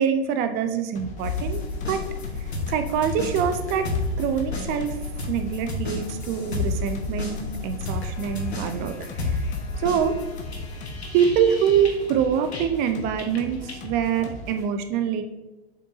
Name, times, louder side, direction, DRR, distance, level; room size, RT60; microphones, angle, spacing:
voice 1, 0.0-1.6 1.9-2.0 2.7-3.9 4.2-5.0 5.3-8.9 9.2-9.4 9.8-10.2 11.1-15.2, right 8 dB, 30° right, 8 dB, 0.6 m, -24 dB
sound 1, 1.0-14.7, left 2 dB, 25° left, 0.9 m, -39 dB
sound 2, 1.2-12.9 13.2-13.9, left 3 dB, 80° left, 1.4 m, -31 dB
7.2 x 5.6 x 2.7 m, 1.1 s
figure-of-eight pair, 95°, 32 cm